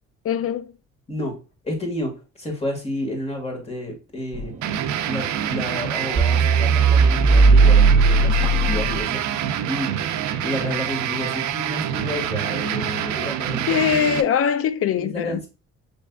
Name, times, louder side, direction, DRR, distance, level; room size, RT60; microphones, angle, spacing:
voice 1, 0.2-0.7 13.7-15.4, left 8 dB, 50° left, 0.5 m, -22 dB
voice 2, 1.6-2.1 2.4-4.5 5.0-13.9 14.9-15.5, left 1 dB, 20° left, 1.8 m, -31 dB
sound 1, 4.3-4.7 5.3-5.5 5.7-5.8 6.1-9.4, right 4 dB, 25° right, 0.5 m, -17 dB
sound 2, 4.6-14.2, right 10 dB, 75° right, 0.6 m, -26 dB
6.7 x 3.2 x 2.3 m
cardioid pair, 90°, 30 cm